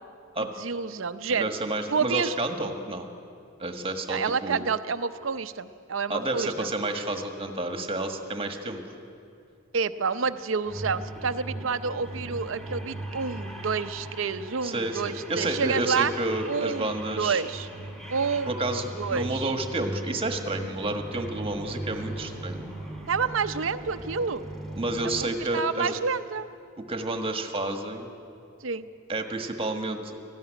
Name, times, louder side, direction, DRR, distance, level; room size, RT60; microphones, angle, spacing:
voice 1, 0.6-1.5 1.9-2.4 4.1-6.5 9.7-16.1 16.5-16.9 17.2-17.7 18.1-18.5 19.0-19.5 23.1-24.4 25.0-26.5 28.6-28.9, right 5 dB, 70° right, 11 dB, 0.7 m, -29 dB
voice 2, 1.3-3.1 3.6-4.7 6.1-8.8 14.6-15.0 15.3-17.4 18.5-22.6 24.8-25.9 26.9-28.1 29.1-30.2, right 2 dB, 30° right, 5 dB, 1.5 m, -30 dB
sound 1, 10.6-25.3, right 1 dB, ahead, 2.1 m, -38 dB
18.0 x 14.5 x 10.0 m, 2.4 s
head